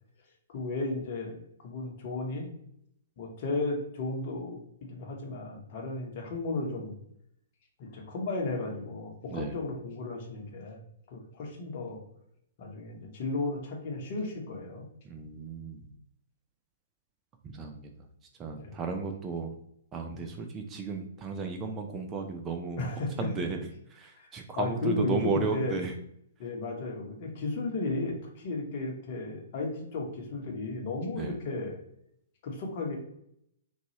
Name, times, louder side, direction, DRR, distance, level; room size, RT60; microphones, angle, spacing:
voice 1, 0.5-2.5 3.2-7.0 7.8-10.8 11.1-12.0 12.6-14.8 18.5-18.7 20.1-20.3 22.8-23.3 24.2-24.3 24.5-25.8 26.4-31.8 32.4-33.0, left 3 dB, 45° left, 1 dB, 0.9 m, -34 dB
voice 2, 15.0-15.9 17.4-17.9 18.4-19.6 19.9-22.8 23.2-23.6 23.9-25.9 31.2-31.3, right 5 dB, 20° right, 4 dB, 0.4 m, -34 dB
3.9 x 2.3 x 2.8 m, 0.74 s
figure-of-eight pair, 120°, 0 cm